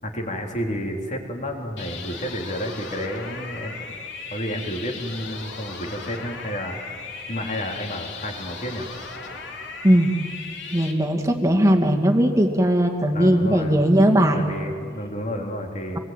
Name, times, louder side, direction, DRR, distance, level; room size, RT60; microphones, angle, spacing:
voice 1, 0.0-3.9 4.3-6.8 7.3-8.9 13.1-13.8 14.3-16.0, equal, 40° left, 1 dB, 3.7 m, -31 dB
sound 1, 1.8-10.9, left 4 dB, 70° left, 3.3 m, -37 dB
voice 2, 10.7-14.4, equal, 15° right, 2 dB, 2.3 m, -18 dB
26.5 x 21.0 x 9.1 m, 2.2 s
head